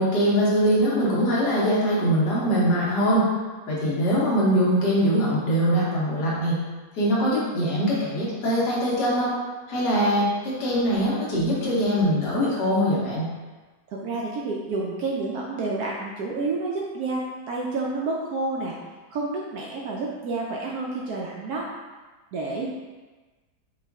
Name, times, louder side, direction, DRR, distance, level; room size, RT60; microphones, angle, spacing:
voice 1, 0.0-3.3 3.7-6.6 6.9-9.3 9.7-13.3, equal, 65° left, -6 dB, 1.6 m, -22 dB
voice 2, 13.9-18.7 19.1-21.7 22.3-22.7, right 3 dB, 70° right, -3 dB, 0.9 m, -29 dB
4.9 x 2.4 x 3.5 m, 1.3 s
omnidirectional pair, 2.0 m